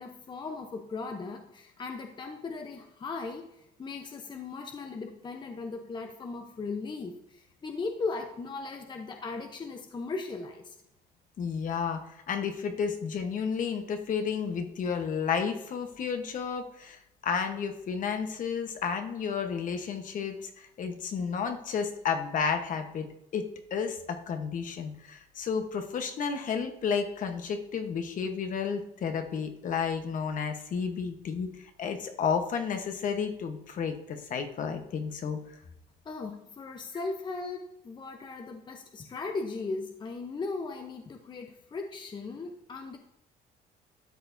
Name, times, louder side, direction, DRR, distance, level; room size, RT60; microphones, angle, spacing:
voice 1, 0.0-3.5 3.8-10.8 36.0-43.0, left 3 dB, 25° left, 4 dB, 0.8 m, -37 dB
voice 2, 11.4-23.5 23.7-31.5 31.8-35.4, left 6 dB, 50° left, 6 dB, 1.1 m, -32 dB
12.5 x 6.7 x 2.7 m, 0.83 s
cardioid pair, 110°, 17 cm